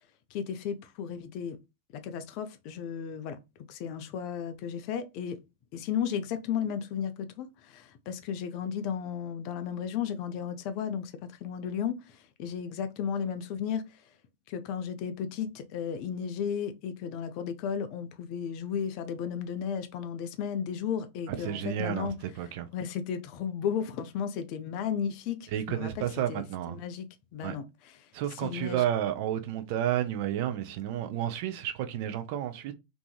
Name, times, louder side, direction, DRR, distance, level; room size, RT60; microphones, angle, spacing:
voice 1, 0.3-1.6 1.9-3.4 3.7-5.4 5.7-14.0 14.5-22.2 22.7-28.0 28.3-28.8, left 8 dB, 45° left, 0.4 m, -34 dB
voice 2, 21.3-22.7 25.5-26.8 27.4-27.5 28.1-32.7, right 11 dB, 45° right, 0.4 m, -31 dB
2.6 x 2.5 x 2.3 m
figure-of-eight pair, 90°, 0 cm